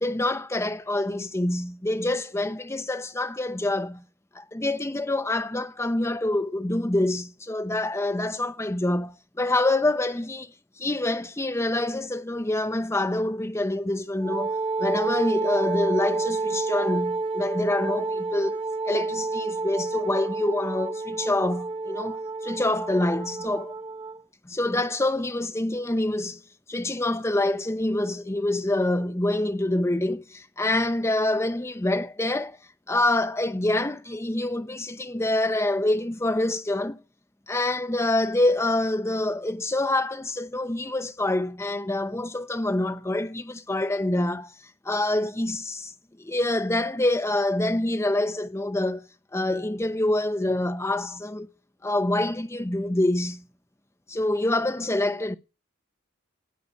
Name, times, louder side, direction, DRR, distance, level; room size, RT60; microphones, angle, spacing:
voice 1, 0.0-4.0 4.3-23.7 24.5-26.4 26.7-32.6 32.9-37.0 37.5-44.5 44.8-45.9 46.2-49.0 49.3-51.5 51.8-53.4 54.1-55.4, left 1 dB, 15° left, 0.7 m, -26 dB
Wind instrument woodwind instrument, 14.2-24.2, right 3 dB, 25° right, 1.1 m, -29 dB
19.0 x 6.8 x 9.6 m
head